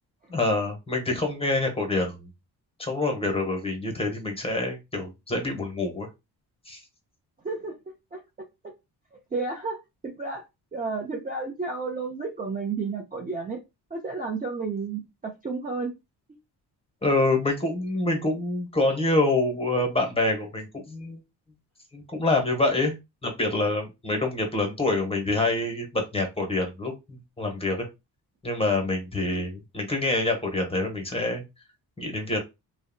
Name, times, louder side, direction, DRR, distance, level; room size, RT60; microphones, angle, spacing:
voice 1, 0.3-2.2 2.8-6.1 6.7-6.8 17.0-21.2 21.9-22.9 23.2-27.9 28.4-31.4 32.0-32.4, left 2 dB, 15° left, 0.9 m, -26 dB
voice 2, 7.4-8.2 9.1-10.4 10.7-13.6 13.9-15.9, right 4 dB, 20° right, 0.5 m, -32 dB
2.6 x 2.1 x 2.6 m
cardioid pair, 80°, 41 cm